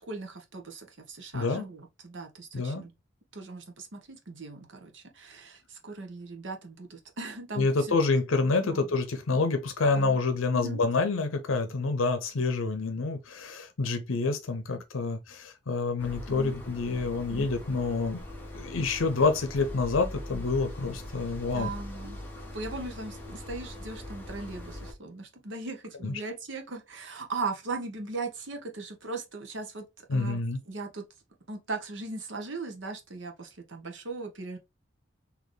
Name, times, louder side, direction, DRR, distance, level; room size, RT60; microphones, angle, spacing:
voice 1, 0.0-2.9 3.3-8.0 8.6-8.9 9.9-10.2 10.5-10.8 16.3-16.6 17.3-17.5 21.5-22.2 22.5-29.8 30.1-31.1 31.5-34.6, right 3 dB, 70° right, 1.0 m, -38 dB
voice 2, 1.3-1.7 2.5-2.9 7.6-18.2 18.5-21.7 26.0-26.1 30.1-30.6, left 3 dB, 85° left, 0.6 m, -28 dB
sound 1, 16.0-24.9, left 1 dB, 10° left, 0.9 m, -41 dB
4.1 x 2.9 x 3.2 m
head